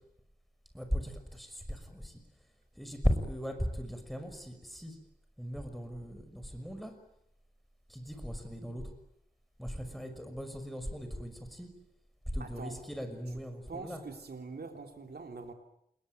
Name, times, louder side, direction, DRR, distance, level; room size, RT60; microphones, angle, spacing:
voice 1, 0.7-2.2 2.8-5.0 5.4-7.0 7.9-8.8 9.6-11.7 12.3-14.0, equal, ahead, 7 dB, 6.1 m, -37 dB
voice 2, 12.4-12.8 13.7-15.5, right 4 dB, 85° right, 4 dB, 3.4 m, -44 dB
28.0 x 22.5 x 9.4 m, 0.75 s
wide cardioid pair, 75°, 16 cm